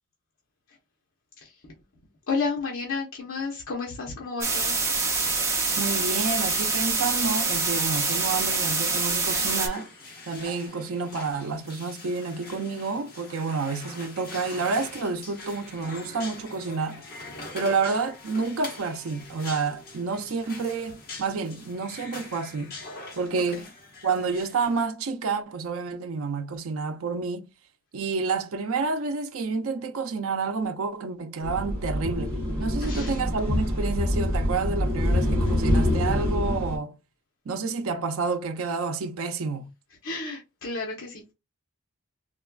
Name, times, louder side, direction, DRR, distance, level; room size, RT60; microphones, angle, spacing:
voice 1, 2.3-4.8 32.8-33.2 40.0-41.3, left 4 dB, 70° left, 0.9 m, -31 dB
sound 1, 4.4-9.7, right 4 dB, 15° right, 0.6 m, -25 dB
voice 2, 5.8-9.9 10.3-17.0 17.5-22.7 23.1-23.6 24.0-27.5 27.9-37.0 37.5-39.7, right 4 dB, 80° right, 0.5 m, -29 dB
sound 2, 9.3-24.8, left 2 dB, 45° left, 1.3 m, -43 dB
sound 3, 31.4-36.8, left 1 dB, 40° right, 0.9 m, -25 dB
4.1 x 2.2 x 2.3 m
head